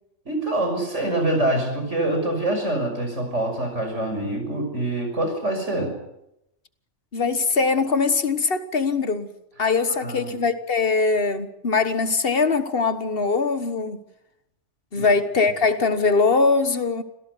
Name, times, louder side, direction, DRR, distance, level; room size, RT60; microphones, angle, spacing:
voice 1, 0.3-5.9 10.0-10.4 15.0-15.1, right 1 dB, 80° right, 6.5 m, -25 dB
voice 2, 7.1-9.3 9.6-14.0 14.9-17.0, left 4 dB, 55° left, 1.5 m, -22 dB
26.5 x 17.0 x 8.1 m
omnidirectional pair, 1.2 m